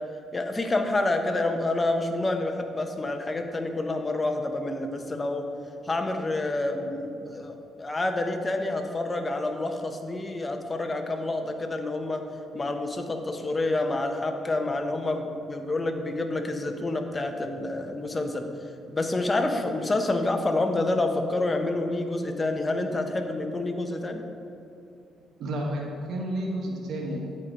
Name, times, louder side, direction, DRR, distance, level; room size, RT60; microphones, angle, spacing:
voice 1, 0.3-5.4 5.8-12.2 12.5-18.5 18.9-24.2, left 2 dB, 25° left, 5 dB, 0.8 m, -28 dB
voice 2, 25.4-27.2, right 1 dB, 70° right, -1 dB, 1.0 m, -31 dB
8.7 x 4.3 x 5.0 m, 2.8 s
cardioid pair, 90°, 0 cm